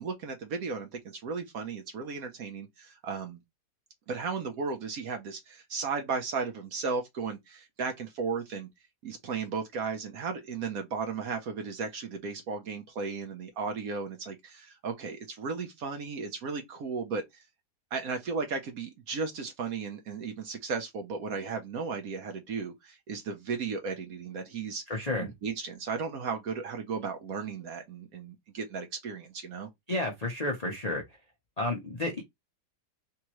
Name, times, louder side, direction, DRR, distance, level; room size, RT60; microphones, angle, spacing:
voice 1, 0.0-3.4 4.1-8.7 9.0-17.4 17.9-24.8 25.2-29.7, right 5 dB, 65° right, 0.9 m, -35 dB
voice 2, 24.9-25.3 29.9-31.0 31.6-32.2, left 2 dB, 50° left, 0.4 m, -31 dB
3.5 x 3.0 x 3.0 m
omnidirectional pair, 2.0 m